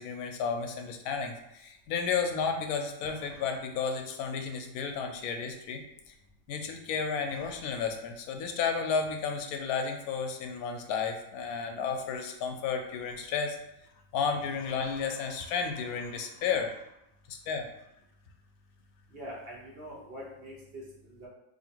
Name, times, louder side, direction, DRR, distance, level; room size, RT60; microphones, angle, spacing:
voice 1, 0.0-6.1 6.5-13.6 14.1-16.8 17.3-17.7, left 6 dB, 85° left, 4 dB, 1.1 m, -32 dB
voice 2, 19.1-21.3, equal, 45° right, -4 dB, 1.1 m, -44 dB
2.8 x 2.8 x 4.4 m, 0.86 s
omnidirectional pair, 1.5 m